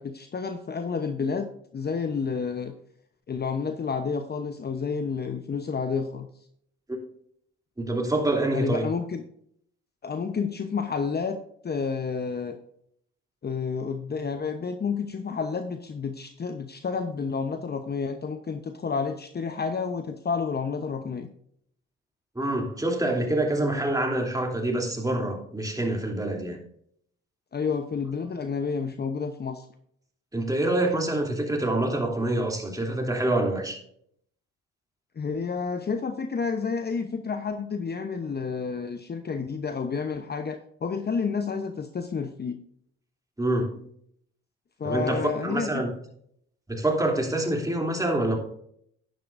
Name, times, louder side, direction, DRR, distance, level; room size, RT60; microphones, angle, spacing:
voice 1, 0.0-2.7 3.3-6.3 8.5-9.2 10.0-11.4 11.6-12.6 13.4-21.3 27.5-29.7 35.2-42.6 44.8-45.7, left 5 dB, 35° left, 8 dB, 0.9 m, -30 dB
voice 2, 7.8-8.9 22.3-26.6 30.3-33.8 43.4-43.7 44.8-45.9 46.7-48.4, right 1 dB, 10° right, 1 dB, 3.1 m, -26 dB
10.5 x 10.5 x 2.6 m, 0.68 s
hypercardioid pair, 55°, 30 cm